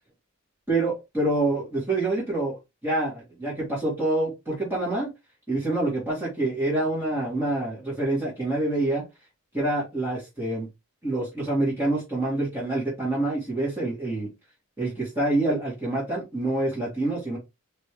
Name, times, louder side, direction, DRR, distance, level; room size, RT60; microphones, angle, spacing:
voice 1, 0.7-2.6 2.8-5.1 5.5-9.0 9.5-10.7 11.0-14.3 14.8-17.4, right 2 dB, 10° right, 1.9 m, -26 dB
4.2 x 3.4 x 3.4 m
head